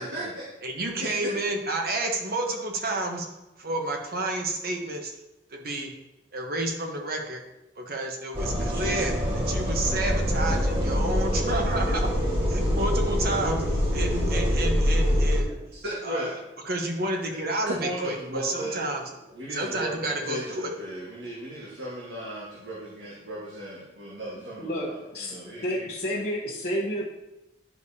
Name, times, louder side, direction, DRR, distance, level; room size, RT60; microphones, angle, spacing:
voice 1, 0.0-0.4 1.0-1.1 15.5-16.3 17.3-17.4 17.6-18.8 19.3-25.9, right 1 dB, 85° right, -6 dB, 1.5 m, -36 dB
voice 2, 0.6-3.3 3.6-5.1 5.5-5.9 6.3-7.4 7.8-12.1 12.5-15.5 16.0-16.4 16.7-19.0 19.5-20.7, right 2 dB, 55° right, 2 dB, 1.1 m, -30 dB
sound 1, 8.3-15.4, equal, 30° right, 2.1 m, -25 dB
voice 3, 24.6-25.4 25.6-27.0, equal, 55° left, -6 dB, 1.0 m, -30 dB
10.5 x 5.0 x 2.8 m, 0.94 s
head